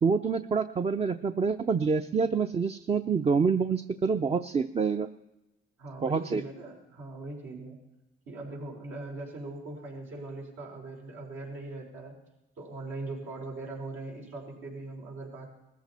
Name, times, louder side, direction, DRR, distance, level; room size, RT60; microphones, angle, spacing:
voice 1, 0.0-5.1 6.0-6.4, right 5 dB, 30° right, 8 dB, 0.6 m, -27 dB
voice 2, 5.8-7.8 8.3-12.1 12.6-15.5, right 2 dB, 80° right, -2 dB, 4.7 m, -40 dB
20.5 x 14.5 x 4.3 m, 0.96 s
cardioid pair, 90°, 20 cm